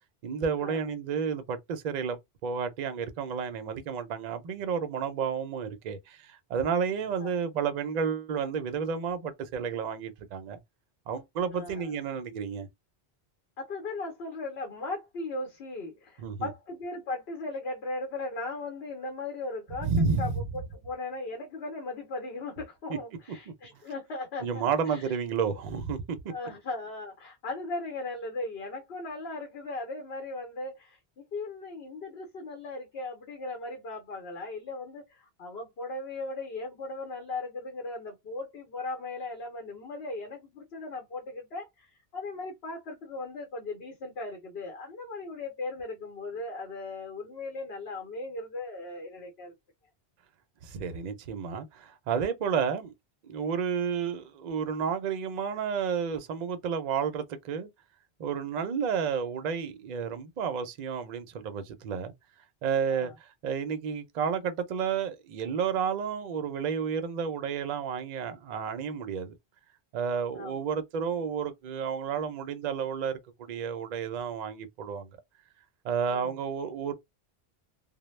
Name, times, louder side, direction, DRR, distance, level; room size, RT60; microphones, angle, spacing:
voice 1, 0.2-10.6 11.1-12.7 16.2-16.5 19.8-20.4 22.9-23.0 24.4-26.3 50.6-52.9 53.3-57.7 58.2-62.1 62.6-69.3 69.9-75.1 75.8-76.9, right 6 dB, 55° right, 0.5 m, -31 dB
voice 2, 11.5-11.9 13.6-19.9 20.2-25.1 26.3-49.5 62.9-63.1 70.3-70.6 76.1-76.3, left 2 dB, 75° left, 1.0 m, -38 dB
2.0 x 2.0 x 3.1 m
omnidirectional pair, 1.1 m